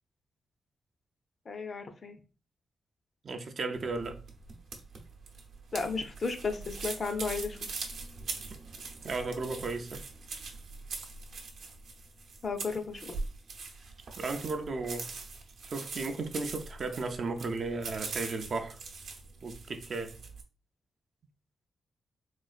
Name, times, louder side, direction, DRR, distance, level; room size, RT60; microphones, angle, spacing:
voice 1, 1.5-2.2 5.7-7.6 12.4-13.2, left 4 dB, 40° left, 0.5 m, -34 dB
voice 2, 3.2-4.2 9.0-10.0 14.2-15.1 15.6-18.8 19.4-20.2, right 3 dB, 45° right, 0.4 m, -35 dB
sound 1, 3.7-20.4, right 4 dB, 75° right, 0.7 m, -42 dB
3.8 x 2.3 x 2.4 m
wide cardioid pair, 150°, 0 cm